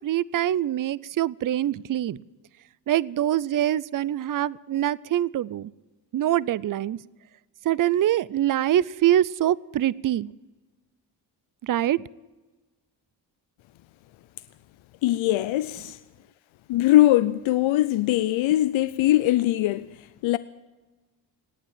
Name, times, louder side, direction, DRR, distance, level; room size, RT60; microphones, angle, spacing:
voice 1, 0.0-2.2 2.9-5.7 6.1-7.0 7.7-10.3 11.6-12.0, right 12 dB, 45° right, 0.5 m, -24 dB
voice 2, 15.0-16.0 16.7-20.4, left 14 dB, 85° left, 0.6 m, -21 dB
18.0 x 9.0 x 8.7 m
cardioid pair, 65°, 45 cm